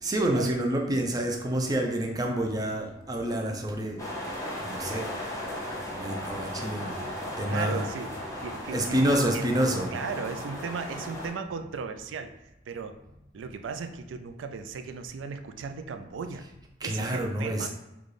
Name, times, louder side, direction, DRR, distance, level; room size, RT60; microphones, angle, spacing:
voice 1, 0.0-7.8 8.7-9.9 16.8-17.7, right 1 dB, 20° right, 2 dB, 0.5 m, -29 dB
sound 1, 4.0-11.3, left 1 dB, 20° left, 0.8 m, -36 dB
voice 2, 7.5-9.0 9.3-9.5 9.9-12.3 12.7-13.0 13.3-16.5 16.8-17.7, right 5 dB, 90° right, 8 dB, 0.4 m, -36 dB
4.0 x 2.3 x 3.2 m, 0.92 s
head